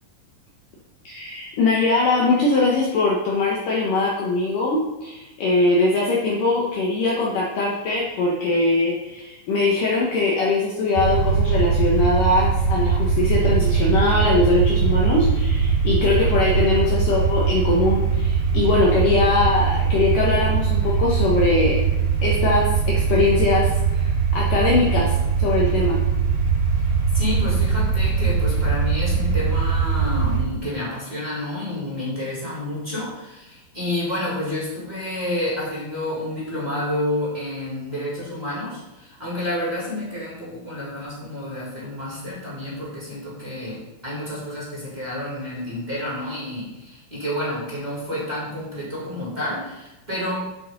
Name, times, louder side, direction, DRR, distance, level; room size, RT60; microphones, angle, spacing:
voice 1, 1.0-21.9 22.2-26.0, left 3 dB, 85° left, -4 dB, 1.8 m, -21 dB
sound 1, 11.0-30.4, right 6 dB, 50° right, 4.4 m, -21 dB
voice 2, 27.1-50.3, left 1 dB, 10° right, -7 dB, 2.9 m, -29 dB
9.4 x 6.4 x 5.3 m, 0.99 s
omnidirectional pair, 5.8 m